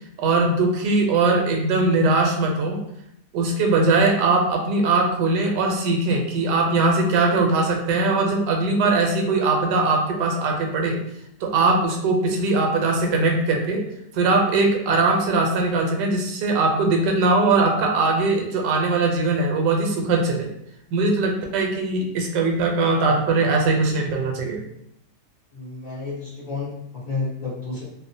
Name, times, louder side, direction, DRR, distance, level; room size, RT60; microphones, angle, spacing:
voice 1, 0.2-2.8 3.3-11.0 11.4-13.8 14.1-20.5 20.9-24.6, right 3 dB, 85° right, 1 dB, 1.2 m, -20 dB
voice 2, 25.5-27.8, left 3 dB, 50° left, -11 dB, 0.6 m, -31 dB
2.8 x 2.0 x 2.5 m, 0.76 s
omnidirectional pair, 1.8 m